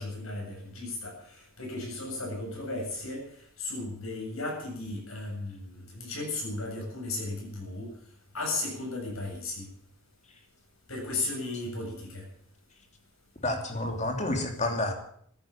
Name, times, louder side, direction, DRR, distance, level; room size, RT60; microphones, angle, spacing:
voice 1, 0.0-3.3 3.6-7.9 8.3-9.7 10.9-12.2, left 2 dB, 80° left, 0 dB, 7.8 m, -35 dB
voice 2, 13.4-14.9, left 2 dB, 35° left, 4 dB, 2.9 m, -29 dB
14.0 x 11.0 x 8.8 m, 0.64 s
head